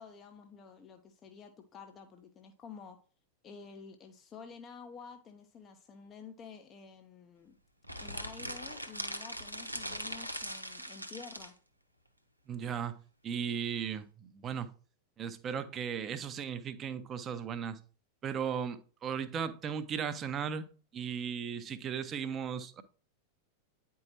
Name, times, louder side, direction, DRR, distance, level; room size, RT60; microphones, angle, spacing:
voice 1, 0.0-3.0 3.4-7.6 8.0-11.5, left 6 dB, 25° left, 0.7 m, -50 dB
sound 1, 7.8-11.5, equal, 90° right, 0.8 m, -40 dB
voice 2, 12.5-13.0 13.2-14.7 15.2-17.8 18.2-20.7 20.9-22.8, right 7 dB, 25° right, 0.7 m, -36 dB
9.5 x 4.6 x 3.0 m
figure-of-eight pair, 90°, 0 cm